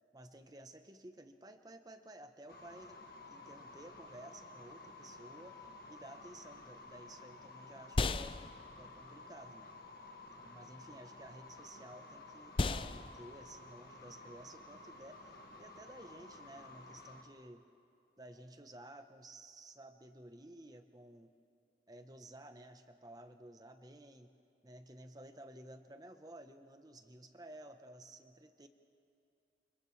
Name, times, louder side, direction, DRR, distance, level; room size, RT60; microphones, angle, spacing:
voice 1, 0.1-8.4 8.8-9.8 10.4-17.6 18.2-21.3 21.9-24.3 24.6-28.7, right 1 dB, 20° right, 7 dB, 0.9 m, -54 dB
sound 1, 2.5-17.2, left 2 dB, 55° left, 2.0 m, -53 dB
sound 2, 6.6-16.2, left 3 dB, 30° left, 0.4 m, -41 dB
29.0 x 29.0 x 3.3 m, 2.6 s
head